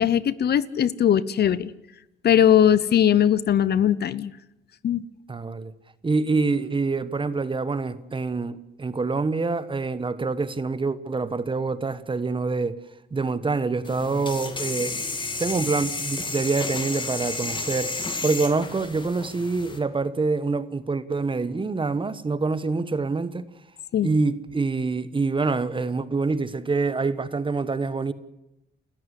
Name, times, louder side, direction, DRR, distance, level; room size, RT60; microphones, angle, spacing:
voice 1, 0.0-1.7 2.2-4.3 4.8-5.0 23.9-24.1, left 9 dB, 55° left, 0.8 m, -20 dB
voice 2, 5.3-5.7 6.0-12.8 13.1-15.0 15.4-23.5 24.0-28.1, right 4 dB, 25° right, 1.2 m, -26 dB
sound 1, 13.8-19.8, left 3 dB, 25° left, 2.7 m, -32 dB
29.5 x 13.5 x 8.2 m
cardioid pair, 90°, 20 cm